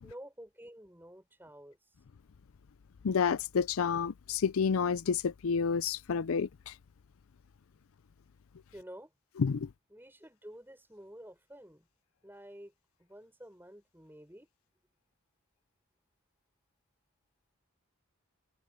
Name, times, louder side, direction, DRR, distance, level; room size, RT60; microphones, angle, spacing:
voice 1, 0.0-1.8 8.7-9.1 9.9-11.9 12.2-12.7 13.0-14.5, equal, 10° right, 6.7 m, -50 dB
voice 2, 3.0-6.7 9.4-9.7, left 6 dB, 70° left, 0.5 m, -29 dB
head